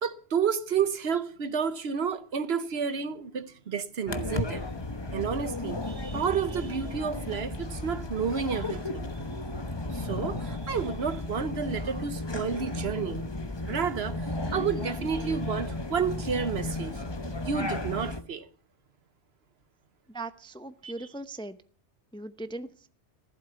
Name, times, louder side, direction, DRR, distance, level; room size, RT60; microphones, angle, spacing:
voice 1, 0.0-4.6 5.1-9.1 9.9-13.2 13.7-17.0 17.5-18.5 20.8-21.1, right 6 dB, 65° right, 1.1 m, -31 dB
sound 1, 4.1-18.2, left 2 dB, 25° left, 1.1 m, -34 dB
voice 2, 20.1-21.6 22.1-22.9, right 2 dB, 5° left, 0.6 m, -39 dB
15.0 x 11.5 x 6.8 m
omnidirectional pair, 1.2 m